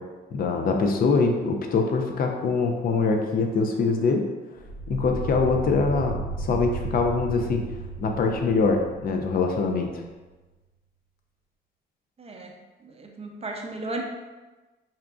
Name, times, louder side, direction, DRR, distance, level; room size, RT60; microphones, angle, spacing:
voice 1, 0.3-4.3 4.9-7.6 8.0-10.0, left 4 dB, 50° left, 3 dB, 0.5 m, -23 dB
sound 1, 4.6-9.8, right 3 dB, 10° left, 0.9 m, -34 dB
voice 2, 12.2-12.5 12.8-14.0, right 2 dB, 30° right, 1 dB, 0.6 m, -35 dB
5.6 x 2.5 x 2.4 m, 1.2 s
cardioid pair, 90°, 20 cm